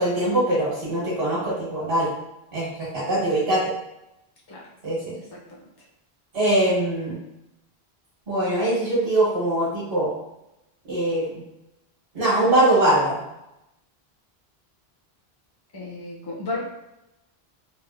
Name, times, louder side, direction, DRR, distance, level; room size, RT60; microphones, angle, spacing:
voice 1, 0.0-2.1 2.5-3.7 4.8-5.1 6.3-7.2 8.3-10.1 10.9-11.4 12.1-13.2, right 1 dB, 65° right, -9 dB, 1.3 m, -22 dB
voice 2, 15.7-16.6, left 2 dB, 25° left, -4 dB, 0.6 m, -33 dB
3.1 x 2.5 x 2.5 m, 0.90 s
omnidirectional pair, 1.1 m